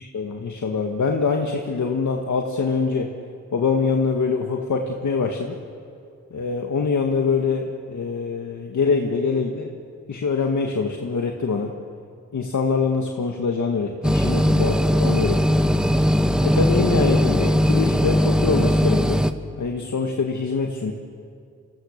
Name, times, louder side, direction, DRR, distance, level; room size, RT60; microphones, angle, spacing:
voice 1, 0.0-3.1 3.5-5.6 6.3-9.7 10.1-11.7 12.3-15.6 16.4-19.2 19.6-20.9, left 5 dB, 75° left, 2 dB, 1.8 m, -24 dB
sound 1, 14.0-19.3, equal, 5° right, 1.3 m, -19 dB
28.5 x 26.0 x 6.7 m, 2.4 s
cardioid pair, 60°, 30 cm